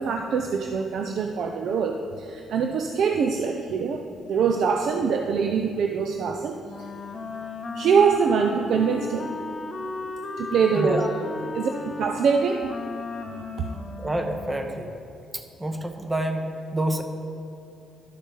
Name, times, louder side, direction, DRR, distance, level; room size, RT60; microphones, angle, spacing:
voice 1, 0.0-4.0 4.3-6.9 7.7-9.3 10.4-11.1 11.5-12.7 13.0-13.2, right 6 dB, 70° right, 4 dB, 0.5 m, -24 dB
Wind instrument woodwind instrument, 6.6-14.9, left 3 dB, 35° left, 0.7 m, -35 dB
voice 2, 10.8-11.1 14.0-14.9 15.3-17.0, right 1 dB, 15° right, 5 dB, 0.9 m, -28 dB
12.0 x 6.3 x 3.9 m, 2.6 s
cardioid pair, 90°, 0 cm